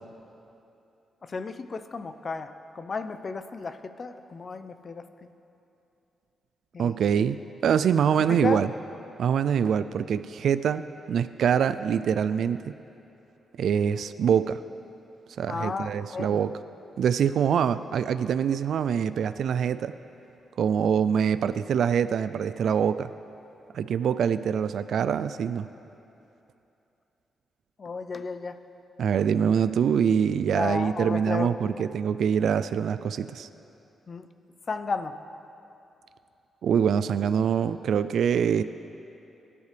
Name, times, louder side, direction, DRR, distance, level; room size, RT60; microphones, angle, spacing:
voice 1, 1.2-5.3 6.7-7.0 8.4-8.6 15.5-16.4 27.8-28.6 30.5-31.8 34.1-34.3 34.7-35.2, left 4 dB, 30° left, 10 dB, 0.5 m, -33 dB
voice 2, 6.8-8.7 9.2-10.8 11.1-12.7 13.6-14.6 15.4-16.6 17.0-19.9 20.6-23.1 23.7-25.7 29.0-33.5 36.6-38.6, right 8 dB, 65° right, 13 dB, 0.3 m, -24 dB
24.0 x 11.0 x 3.4 m, 2.8 s
wide cardioid pair, 160°, 0 cm